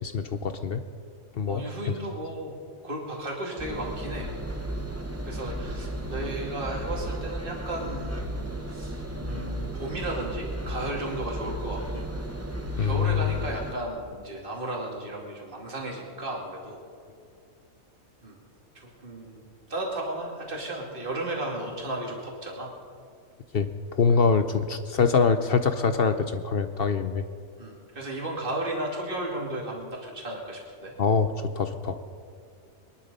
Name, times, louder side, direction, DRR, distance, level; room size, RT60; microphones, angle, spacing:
voice 1, 0.0-0.8 1.4-1.6 12.8-13.3 23.5-27.2 31.0-32.0, left 5 dB, 50° left, 10 dB, 0.8 m, -24 dB
voice 2, 1.5-2.5 2.8-4.3 4.7-4.9 5.2-8.1 8.7-12.0 12.8-16.8 18.2-18.4 18.7-22.7 24.1-24.2 27.6-30.9, right 1 dB, 40° right, -1 dB, 2.7 m, -34 dB
Engine, 3.6-13.7, right 1 dB, 10° right, 1.0 m, -34 dB
22.0 x 11.5 x 5.4 m, 2.3 s
omnidirectional pair, 1.4 m